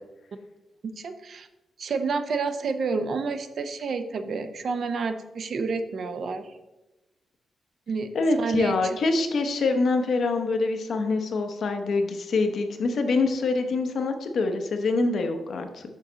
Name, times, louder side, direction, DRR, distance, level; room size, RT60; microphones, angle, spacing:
voice 1, 0.8-1.5 1.8-6.5 7.9-8.1 8.4-8.8, right 4 dB, 55° right, 8 dB, 0.6 m, -29 dB
voice 2, 8.1-15.8, left 3 dB, 60° left, 6 dB, 0.8 m, -25 dB
6.4 x 6.2 x 3.9 m, 1.0 s
wide cardioid pair, 145°, 0 cm